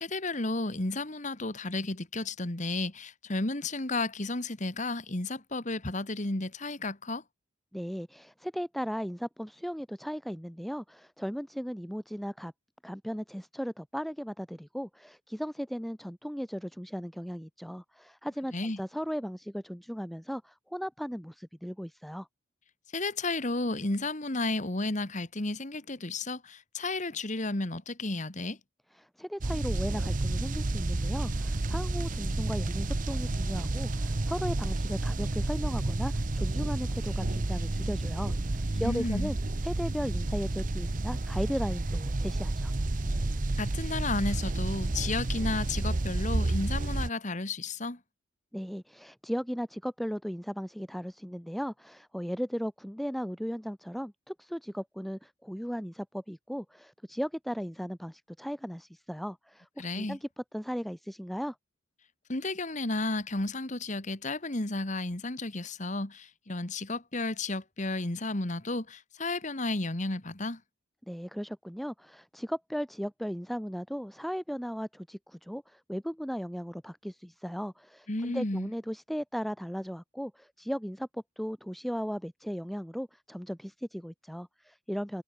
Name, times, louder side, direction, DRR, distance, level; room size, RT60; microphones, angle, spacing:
voice 1, 0.0-7.2 18.5-18.8 22.9-28.6 38.7-39.3 43.6-48.0 59.8-60.2 62.3-70.6 78.1-78.7, left 2 dB, 35° left, 1.7 m, -32 dB
voice 2, 7.7-12.5 12.8-22.3 28.9-39.4 39.6-42.7 48.5-60.3 60.5-61.6 71.1-85.2, equal, ahead, 1.0 m, -36 dB
sound 1, 29.4-47.1, right 2 dB, 40° right, 0.8 m, -30 dB
head